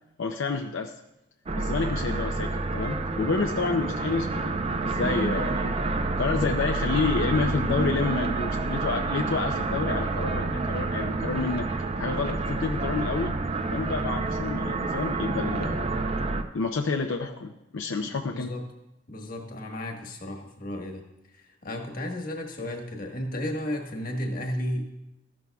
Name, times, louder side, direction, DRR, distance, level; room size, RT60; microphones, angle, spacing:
voice 1, 0.2-0.9 1.5-5.8 6.2-11.7 12.0-13.3 13.7-15.9 16.5-18.5, left 4 dB, 80° left, 4 dB, 0.6 m, -29 dB
sound 1, 1.5-16.4, right 3 dB, 30° right, 0.5 m, -28 dB
voice 2, 18.3-18.6 19.1-21.0 21.3-24.9, left 1 dB, 50° left, 2 dB, 1.4 m, -33 dB
13.5 x 11.0 x 2.3 m, 0.92 s
head